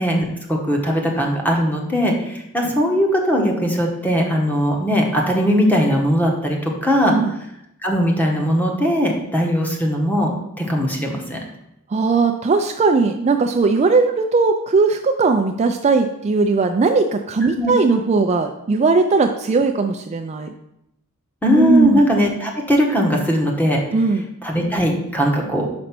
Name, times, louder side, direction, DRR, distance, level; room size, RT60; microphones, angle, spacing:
voice 1, 0.0-7.1 7.8-10.3 10.6-11.4 17.5-17.7 21.4-23.8 24.4-25.6, equal, 10° left, 0 dB, 1.2 m, -19 dB
voice 2, 7.0-7.3 11.9-20.5 21.6-22.0 23.9-24.3, right 4 dB, 30° right, 5 dB, 0.4 m, -18 dB
5.3 x 5.2 x 5.9 m, 0.81 s
head